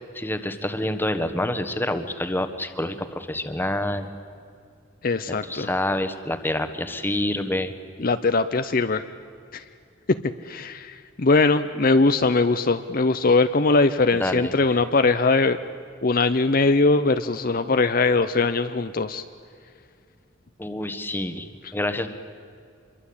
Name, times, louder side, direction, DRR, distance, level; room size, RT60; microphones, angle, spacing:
voice 1, 0.1-4.1 5.5-7.7 14.2-14.5 20.6-22.1, left 1 dB, 10° left, 9 dB, 1.3 m, -27 dB
voice 2, 5.0-5.7 8.0-9.0 9.5-9.6 10.1-10.2 10.4-15.6 16.0-19.2, left 3 dB, 45° left, 10 dB, 0.7 m, -21 dB
26.0 x 22.5 x 8.7 m, 2.3 s
head